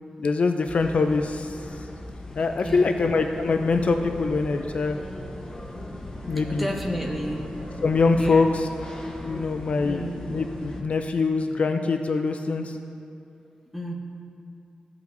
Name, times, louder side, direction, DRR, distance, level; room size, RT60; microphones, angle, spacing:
voice 1, 0.2-1.6 2.4-5.0 6.3-6.7 7.8-8.5 9.2-12.8, left 4 dB, 50° left, 6 dB, 0.3 m, -23 dB
sound 1, 0.6-10.8, left 1 dB, 30° left, 0.8 m, -39 dB
voice 2, 2.6-3.0 6.5-7.5 8.2-8.5 9.8-10.3 13.7-13.9, equal, ahead, -1 dB, 0.8 m, -31 dB
sound 2, 3.5-8.5, equal, 85° right, 1.4 m, -45 dB
Wind instrument woodwind instrument, 6.1-9.5, equal, 50° right, 1.5 m, -49 dB
14.5 x 5.7 x 2.6 m, 2.6 s
wide cardioid pair, 175°, 3 cm